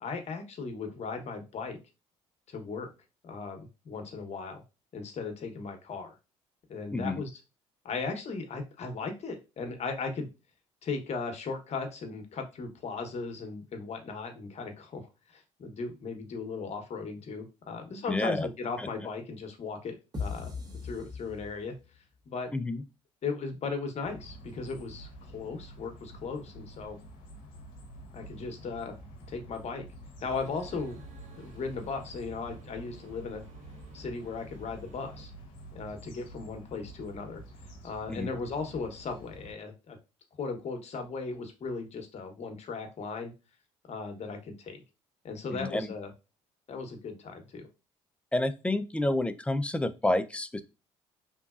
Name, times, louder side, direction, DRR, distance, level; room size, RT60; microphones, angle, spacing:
voice 1, 0.0-1.8 2.5-2.9 3.2-4.6 4.9-6.1 6.7-7.3 7.8-10.3 10.8-20.5 20.8-21.7 22.3-22.5 23.2-27.0 28.1-29.0 29.3-29.8 30.2-31.0 31.4-33.4 33.9-35.3 35.7-37.4 37.8-40.0 40.4-43.3 43.9-44.8 45.2-46.1 46.7-47.7, left 4 dB, 50° left, 5 dB, 0.9 m, -37 dB
voice 2, 6.9-7.2 18.1-18.5 18.8-18.9 22.5-22.8 38.1-38.3 45.5-45.9 48.3-50.6, left 1 dB, 10° left, 10 dB, 0.4 m, -29 dB
sound 1, 20.1-22.0, left 5 dB, 30° right, 1.0 m, -38 dB
sound 2, 24.0-39.5, right 1 dB, 75° left, 0.7 m, -49 dB
sound 3, 30.2-35.3, right 3 dB, 55° right, 1.0 m, -53 dB
3.1 x 2.5 x 2.4 m, 0.29 s
hypercardioid pair, 55°, 15 cm